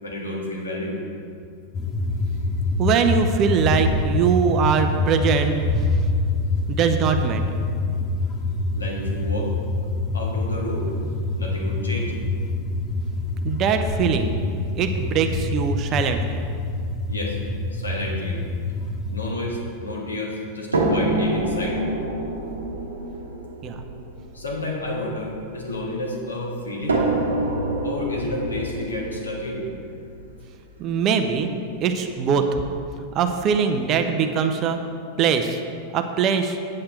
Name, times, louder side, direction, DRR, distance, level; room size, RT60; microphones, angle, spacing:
voice 1, 0.0-1.0 8.7-9.5 10.1-10.9 11.4-12.1 17.1-17.4 17.7-18.4 19.1-21.8 24.3-27.0 27.8-29.7, left 1 dB, 75° left, -1 dB, 1.7 m, -30 dB
sound 1, 1.7-19.3, left 2 dB, 30° left, 1.0 m, -26 dB
voice 2, 2.8-6.1 6.7-7.6 13.4-14.3 14.8-16.4 23.6-23.8 30.8-31.5 31.8-32.5 33.1-34.8 35.2-35.6 35.9-36.6, right 6 dB, 35° right, 7 dB, 0.7 m, -22 dB
sound 2, 20.7-25.9 26.9-30.9 31.8-31.9 32.4-32.5, right 1 dB, 75° right, 1.1 m, -27 dB
8.7 x 8.6 x 4.4 m, 2.3 s
figure-of-eight pair, 90°, 0 cm